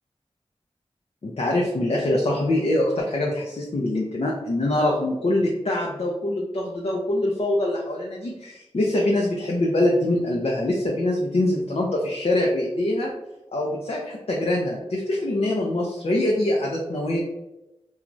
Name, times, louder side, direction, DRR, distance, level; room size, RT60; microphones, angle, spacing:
voice 1, 1.2-13.1 13.5-17.2, left 1 dB, 60° left, -2 dB, 0.5 m, -24 dB
3.0 x 2.3 x 2.5 m, 0.94 s
wide cardioid pair, 55°, 11 cm